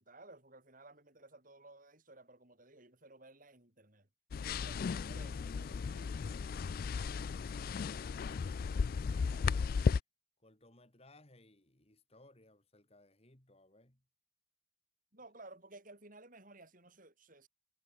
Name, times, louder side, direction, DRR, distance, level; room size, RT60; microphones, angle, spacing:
voice 1, 0.0-4.1 4.4-6.2 15.1-17.5, right 2 dB, 45° right, 5.5 m, -57 dB
sound 1, 4.3-10.0, left 5 dB, 50° left, 0.3 m, -35 dB
voice 2, 6.8-9.9 10.4-14.0, left 1 dB, 30° left, 3.6 m, -63 dB
head